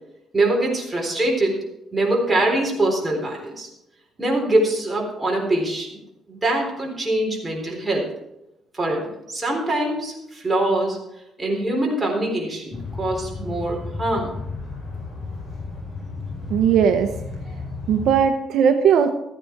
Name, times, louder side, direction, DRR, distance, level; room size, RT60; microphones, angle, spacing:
voice 1, 0.3-1.6 1.9-3.7 4.2-6.0 6.3-8.1 8.7-11.0 11.4-14.3, right 1 dB, 15° right, -1 dB, 4.0 m, -23 dB
sound 1, 12.7-18.2, left 3 dB, 35° left, 4.9 m, -33 dB
voice 2, 16.5-17.1 17.9-19.1, right 7 dB, 70° right, 6 dB, 0.9 m, -18 dB
14.5 x 9.4 x 4.6 m, 0.89 s
cardioid pair, 125°, 0 cm